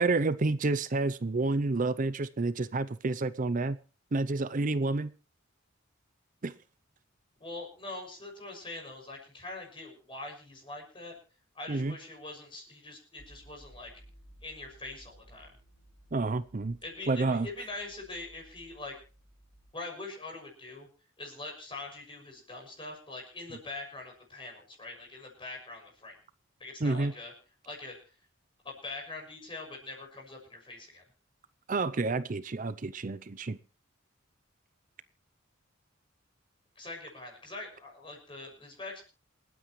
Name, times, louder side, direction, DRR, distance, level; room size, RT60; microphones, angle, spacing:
voice 1, 0.0-3.8 4.1-5.1 6.4-6.5 11.7-11.9 16.1-16.8 17.1-17.5 26.8-27.1 31.7-33.6, right 3 dB, 40° right, 15 dB, 0.6 m, -29 dB
voice 2, 7.4-11.1 11.5-13.9 14.4-15.5 16.8-18.9 19.7-20.9 21.2-26.2 26.6-27.3 27.6-28.0 28.6-31.0 36.7-39.0, left 2 dB, 25° left, 0 dB, 6.4 m, -43 dB
sound 1, 13.2-19.7, right 1 dB, 85° left, 5.2 m, -58 dB
28.0 x 9.5 x 3.2 m, 0.35 s
head